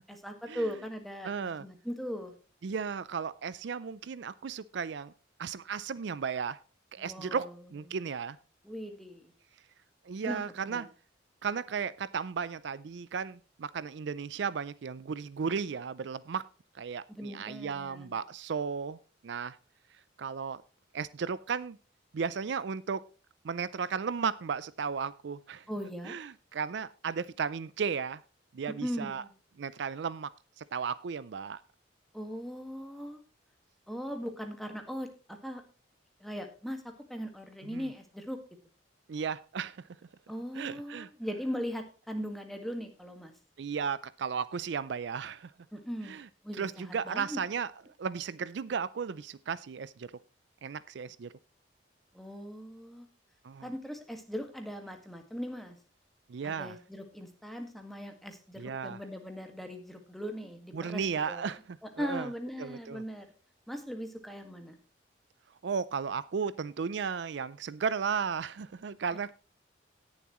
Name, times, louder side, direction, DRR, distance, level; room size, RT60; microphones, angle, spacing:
voice 1, 0.1-2.3 7.0-7.5 8.6-9.3 10.2-10.9 17.1-18.2 25.7-26.1 28.8-29.3 32.1-33.2 33.9-35.6 36.2-38.4 40.3-43.3 45.7-46.2 46.4-47.4 52.1-53.1 53.6-55.7 56.4-61.6 62.0-63.3 63.7-64.8, equal, ahead, 4 dB, 1.7 m, -39 dB
voice 2, 1.2-1.6 2.6-5.1 5.4-6.6 6.9-8.4 10.1-10.9 11.4-16.4 16.7-19.0 19.2-19.6 20.2-20.6 20.9-21.8 22.1-23.1 23.4-25.7 26.0-28.2 28.5-29.2 29.6-30.3 30.6-31.6 37.6-37.8 39.1-39.8 40.6-41.1 43.6-45.5 46.0-46.3 46.6-47.7 48.0-50.1 50.6-51.3 53.4-53.7 56.3-56.7 58.6-59.0 60.7-62.3 62.6-63.0 65.6-69.3, right 6 dB, 65° right, 17 dB, 0.4 m, -35 dB
18.0 x 7.3 x 3.0 m, 0.35 s
head